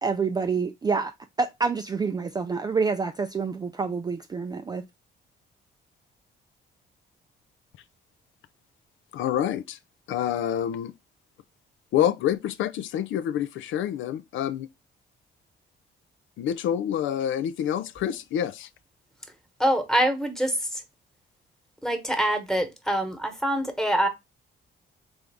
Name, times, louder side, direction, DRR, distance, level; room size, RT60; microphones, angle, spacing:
voice 1, 0.0-4.8, right 5 dB, 20° right, 0.3 m, -27 dB
voice 2, 9.1-9.8 10.1-10.9 11.9-14.7 16.4-18.7, left 10 dB, 75° left, 0.4 m, -27 dB
voice 3, 19.6-20.8 21.8-24.1, right 1 dB, ahead, 1.2 m, -25 dB
3.8 x 3.4 x 3.4 m
cardioid pair, 90°, 20 cm